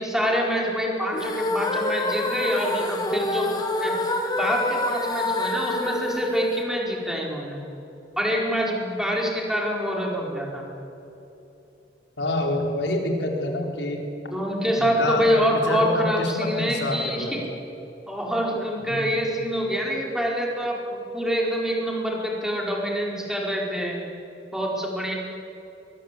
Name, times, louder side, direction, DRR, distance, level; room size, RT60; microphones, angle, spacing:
voice 1, 0.0-3.5 3.8-3.9 4.4-7.6 8.2-10.6 14.3-17.4 18.1-24.0 24.5-25.1, equal, 5° right, -2 dB, 4.7 m, -26 dB
sound 1, 1.1-7.3, left 1 dB, 20° left, 2.1 m, -27 dB
voice 2, 12.2-14.0 14.8-17.3 18.8-19.2, left 1 dB, 85° left, 1 dB, 4.6 m, -27 dB
23.0 x 22.0 x 8.5 m, 3.0 s
head